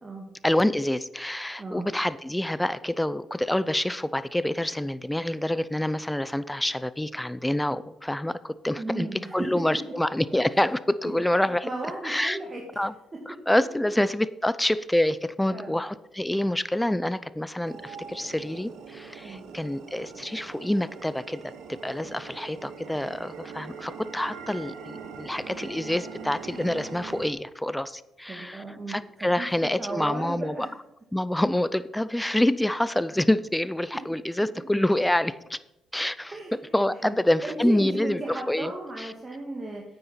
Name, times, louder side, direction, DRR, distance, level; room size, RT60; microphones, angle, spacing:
voice 1, 0.4-11.7 12.0-12.4 12.8-12.9 13.3-21.5 21.8-30.7 31.1-35.6 35.9-36.4 36.7-38.7 39.0-39.1, left 1 dB, 5° left, 16 dB, 0.6 m, -27 dB
voice 2, 1.6-1.9 8.8-9.5 11.6-12.6 15.5-15.7 19.2-19.5 22.0-22.1 28.3-29.5 29.8-30.7 36.3-36.6 37.0-37.1 37.4-39.8, right 2 dB, 30° right, -1 dB, 2.2 m, -35 dB
sound 1, 17.6-27.3, right 5 dB, 80° right, 1.5 m, -42 dB
9.3 x 8.7 x 5.7 m, 0.93 s
cardioid pair, 90°, 0 cm